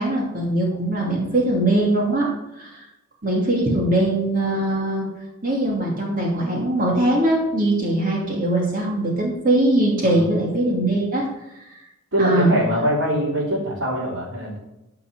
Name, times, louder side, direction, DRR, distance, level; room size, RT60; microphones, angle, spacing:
voice 1, 0.0-2.3 2.6-2.9 3.2-5.1 5.4-11.3 11.5-11.8 12.2-12.5, right 1 dB, 45° right, -2 dB, 2.8 m, -21 dB
voice 2, 10.0-10.3 12.1-14.6, equal, 80° right, -8 dB, 3.8 m, -23 dB
14.5 x 6.0 x 7.5 m, 0.91 s
head